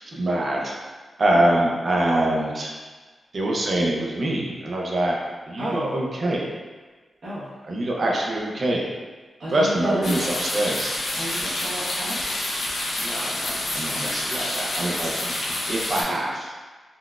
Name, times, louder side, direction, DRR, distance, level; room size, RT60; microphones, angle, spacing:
voice 1, 0.2-0.8 1.2-2.7 3.3-5.2 5.5-6.5 7.7-8.9 9.5-10.9 13.0-16.5, right 1 dB, 40° right, -2 dB, 0.4 m, -24 dB
voice 2, 5.6-5.9 7.2-7.5 9.4-10.2 11.1-12.4, equal, 60° right, -11 dB, 1.0 m, -32 dB
sound 1, 10.0-16.0, left 1 dB, 65° left, 0.5 m, -28 dB
3.7 x 2.2 x 2.3 m, 1.4 s
wide cardioid pair, 165°, 0 cm